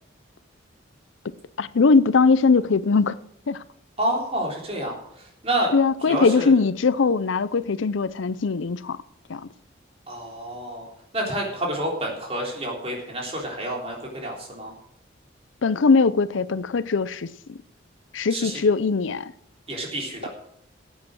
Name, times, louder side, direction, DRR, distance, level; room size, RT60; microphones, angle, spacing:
voice 1, 1.6-3.1 3.5-3.6 5.7-9.0 9.3-9.4 15.6-17.6 18.1-19.3, left 4 dB, 85° left, 0.5 m, -20 dB
voice 2, 4.0-5.7 6.0-6.5 10.1-10.9 11.1-14.7 18.3-18.6 19.7-20.3, right 1 dB, 30° right, 3.5 m, -29 dB
14.5 x 8.4 x 6.4 m
head